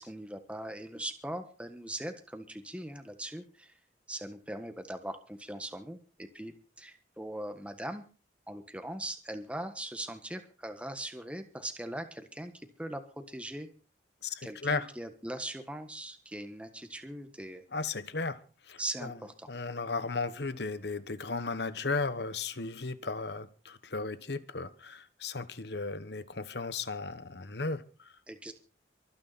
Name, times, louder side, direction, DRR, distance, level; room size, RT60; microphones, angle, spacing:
voice 1, 0.0-3.7 4.1-8.1 8.5-13.7 14.4-17.6 18.8-19.5 28.3-28.5, right 1 dB, 5° right, 7 dB, 1.5 m, -40 dB
voice 2, 14.2-14.9 17.7-19.2 19.5-28.2, left 3 dB, 65° left, 13 dB, 1.3 m, -35 dB
23.5 x 9.8 x 4.3 m, 0.36 s
head